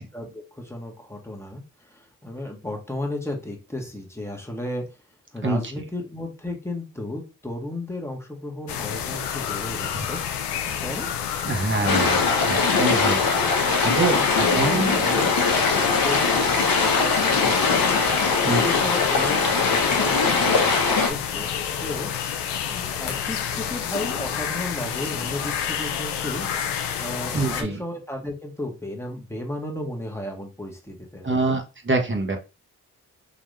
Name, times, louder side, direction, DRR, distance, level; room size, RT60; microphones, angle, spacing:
voice 1, 0.0-4.8 5.3-10.2 10.8-11.1 11.7-12.1 13.9-17.7 18.3-21.5 21.8-22.1 22.7-26.5 27.0-31.6, left 1 dB, 5° left, 1 dB, 1.6 m, -34 dB
sound 1, 8.7-27.6, left 8 dB, 85° left, 0.6 m, -29 dB
voice 2, 11.5-13.2 13.8-15.0 18.5-18.6 27.3-27.8 31.2-32.4, right 3 dB, 30° right, 3 dB, 1.5 m, -25 dB
sound 2, 11.9-21.1, left 4 dB, 60° left, 1.1 m, -21 dB
4.1 x 2.9 x 3.3 m, 0.30 s
hypercardioid pair, 40°, 40 cm